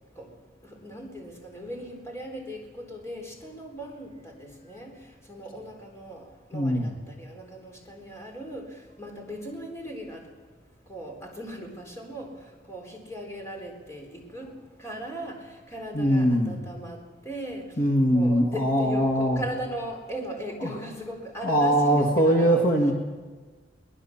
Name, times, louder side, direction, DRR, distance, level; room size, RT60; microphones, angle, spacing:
voice 1, 0.8-4.9 5.3-6.2 6.5-8.7 9.0-10.2 10.9-12.3 12.7-14.5 14.8-15.4 15.7-17.0 17.3-17.7 18.1-22.7, equal, 15° left, 1 dB, 3.8 m, -38 dB
voice 2, 6.5-6.9 15.9-16.6 17.8-19.4 20.6-20.8 21.4-22.9, equal, 50° left, 2 dB, 2.1 m, -22 dB
22.5 x 19.5 x 7.2 m, 1.4 s
head